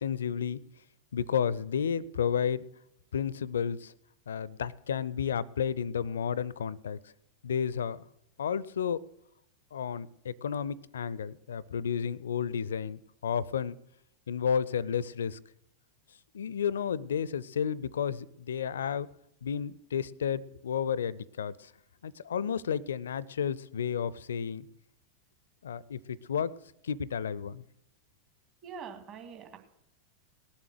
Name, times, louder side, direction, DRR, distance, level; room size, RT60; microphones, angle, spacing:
voice 1, 0.0-0.6 1.1-2.6 3.1-3.9 4.3-7.0 7.4-8.0 8.4-9.0 9.7-13.8 14.3-15.4 16.3-19.1 19.4-21.7 22.0-24.7 25.6-26.5 26.8-27.6, left 7 dB, 65° left, 23 dB, 0.5 m, -32 dB
voice 2, 28.6-29.6, right 6 dB, 35° right, 5 dB, 2.1 m, -44 dB
19.0 x 7.3 x 6.5 m, 0.80 s
figure-of-eight pair, 90°, 0 cm